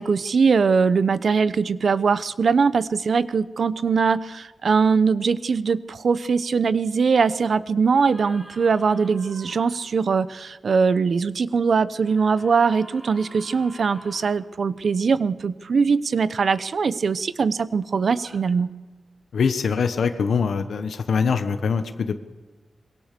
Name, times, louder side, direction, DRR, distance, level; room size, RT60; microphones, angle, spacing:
voice 1, 0.0-18.7, right 5 dB, 55° right, 16 dB, 0.9 m, -21 dB
sound 1, 7.9-9.8 12.0-14.4 18.1-18.4, equal, 15° right, 7.3 m, -46 dB
voice 2, 19.3-22.2, left 5 dB, 75° left, 8 dB, 1.3 m, -23 dB
25.5 x 22.5 x 6.9 m, 1.2 s
wide cardioid pair, 175°, 0 cm